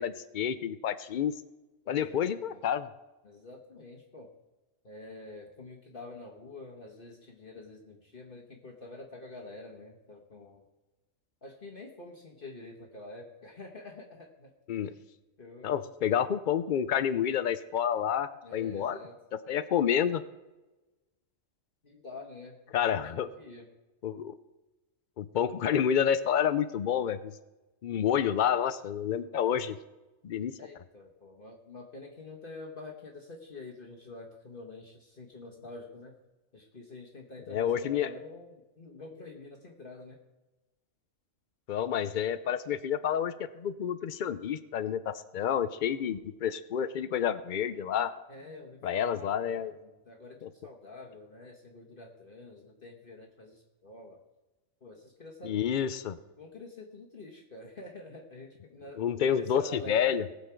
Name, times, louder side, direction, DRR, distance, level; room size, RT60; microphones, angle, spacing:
voice 1, 0.0-1.3 1.9-2.9 14.7-14.9 15.6-19.0 19.5-20.2 22.7-23.3 24.0-24.4 25.2-27.3 27.8-29.8 30.2-30.6 37.5-38.1 41.7-48.1 48.8-49.7 50.4-50.5 55.4-56.2 59.0-60.2, left 9 dB, 75° left, 13 dB, 0.4 m, -29 dB
voice 2, 1.8-2.7 3.2-4.3 4.8-10.6 11.4-14.5 15.4-15.8 18.4-19.2 21.8-23.7 28.0-28.2 30.6-36.2 36.5-40.2 48.3-54.2 54.8-55.7 56.4-59.0 59.3-60.3, left 2 dB, 40° left, 0 dB, 1.4 m, -47 dB
19.5 x 7.2 x 4.5 m, 1.1 s
omnidirectional pair, 1.4 m